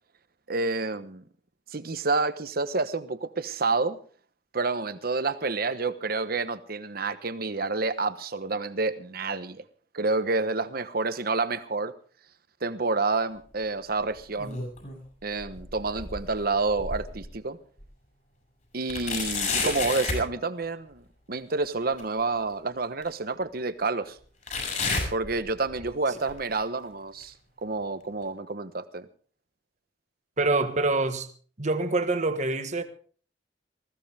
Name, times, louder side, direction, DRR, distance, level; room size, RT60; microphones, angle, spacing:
voice 1, 0.5-1.2 1.7-4.0 4.5-9.6 9.9-11.9 12.6-14.6 15.2-17.6 18.7-21.0 21.3-24.2 25.1-27.3 27.6-29.0, right 3 dB, 60° right, 1.1 m, -29 dB
sound 1, 14.1-15.0 15.4-17.3 17.8-17.9 18.9-20.3 22.0-22.1 23.0-23.1 24.5-25.9 26.2-26.6 27.2-27.3 28.2-28.3, left 3 dB, 45° left, 6.5 m, -31 dB
voice 2, 30.4-31.3 31.6-32.8, right 2 dB, 40° right, 1.5 m, -26 dB
20.0 x 15.5 x 3.5 m
head